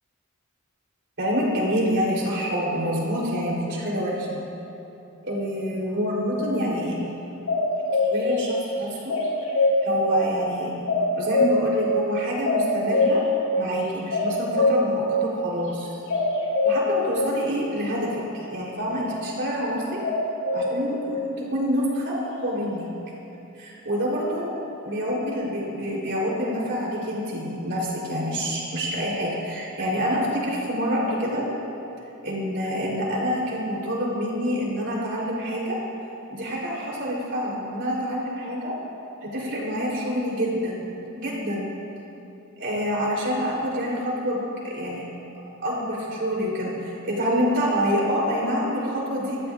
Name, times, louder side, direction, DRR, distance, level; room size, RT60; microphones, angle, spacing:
voice 1, 1.2-4.4 5.2-7.0 7.9-9.2 9.8-10.8 11.1-13.2 13.6-16.0 16.6-20.0 20.5-22.9 23.6-24.4 24.8-31.4 32.2-35.8 36.3-38.7 39.2-41.7 42.6-45.0 45.6-49.4, equal, 60° right, -4 dB, 3.7 m, -27 dB
sound 1, 7.5-8.2 9.1-9.7 10.9-11.6 12.4-13.2 14.1-14.8 16.1-16.7 20.0-20.7, left 3 dB, 85° left, 3.5 m, -21 dB
22.0 x 14.0 x 2.6 m, 2.9 s
head